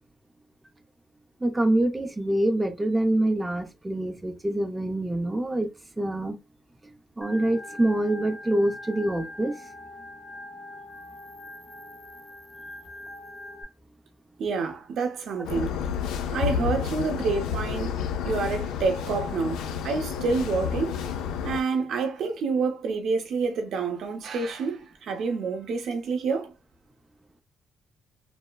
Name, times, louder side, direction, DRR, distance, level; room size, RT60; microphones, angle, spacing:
voice 1, 1.4-5.7 6.0-6.4 7.2-9.6, right 1 dB, 15° right, 0.5 m, -25 dB
Organ, 7.2-13.6, left 2 dB, 20° left, 0.9 m, -43 dB
voice 2, 14.4-15.8 16.3-18.0 18.2-21.0 21.4-26.5, right 4 dB, 75° right, 0.7 m, -28 dB
sound 1, 15.4-21.6, left 7 dB, 90° left, 0.4 m, -30 dB
3.1 x 2.1 x 2.2 m
cardioid pair, 90°, 0 cm